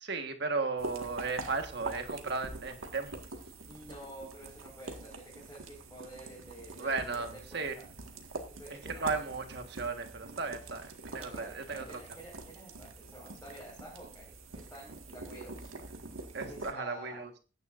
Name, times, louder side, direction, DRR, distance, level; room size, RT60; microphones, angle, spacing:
voice 1, 0.0-3.2 6.8-7.7 8.8-12.0 16.3-17.3, right 4 dB, 55° right, 6 dB, 1.6 m, -35 dB
sound 1, 0.8-16.7, right 2 dB, 85° right, 1.8 m, -45 dB
voice 2, 3.6-7.8 8.5-9.2 11.2-14.3 14.6-15.7 16.4-17.2, right 1 dB, 10° left, -7 dB, 5.0 m, -49 dB
21.0 x 9.8 x 2.6 m, 0.35 s
head